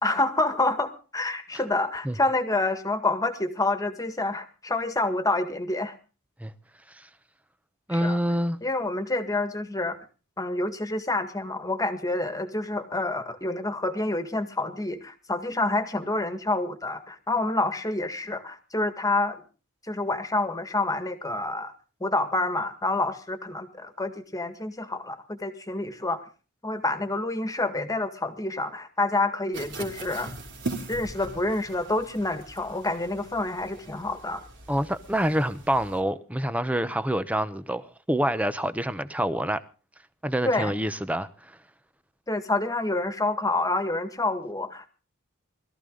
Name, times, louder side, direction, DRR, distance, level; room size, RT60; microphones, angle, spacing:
voice 1, 0.0-5.9 7.9-8.2 8.6-10.0 10.4-19.4 19.9-21.7 22.0-26.2 26.6-30.3 30.9-34.4 40.4-40.7 42.3-44.9, left 2 dB, 15° left, 1.8 m, -28 dB
voice 2, 7.9-8.6 34.7-39.6 40.2-41.5, right 1 dB, 5° right, 0.9 m, -27 dB
sound 1, 29.5-36.0, right 2 dB, 60° right, 3.1 m, -40 dB
21.0 x 14.0 x 3.9 m
head